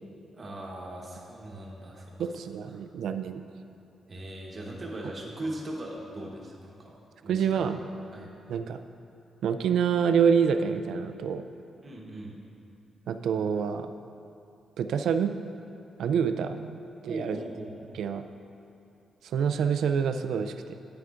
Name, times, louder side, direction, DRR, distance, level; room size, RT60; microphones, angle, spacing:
voice 1, 0.3-2.3 2.7-2.8 4.1-6.9 7.2-7.5 8.1-8.3 11.8-12.4 17.1-18.0, right 1 dB, 30° right, -2 dB, 1.0 m, -39 dB
voice 2, 2.2-3.4 7.2-7.8 8.5-8.8 9.4-11.4 13.1-13.9 14.8-15.3 16.0-17.4 17.9-18.2 19.2-20.7, right 7 dB, 75° right, 9 dB, 0.3 m, -27 dB
9.5 x 7.8 x 2.5 m, 2.8 s
wide cardioid pair, 155°, 0 cm